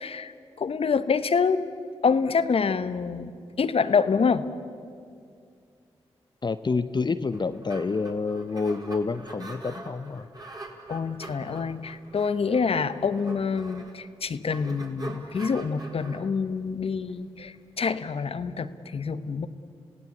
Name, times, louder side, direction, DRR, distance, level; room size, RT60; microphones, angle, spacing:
voice 1, 0.0-1.6 2.0-3.3 3.6-4.5 10.9-19.5, left 5 dB, 60° left, 12 dB, 1.1 m, -26 dB
voice 2, 6.4-10.3, left 4 dB, 40° left, 11 dB, 0.8 m, -28 dB
sound 1, 7.1-17.8, right 2 dB, 35° right, 4.2 m, -44 dB
28.0 x 17.0 x 8.6 m, 2.3 s
supercardioid pair, 40°, 11 cm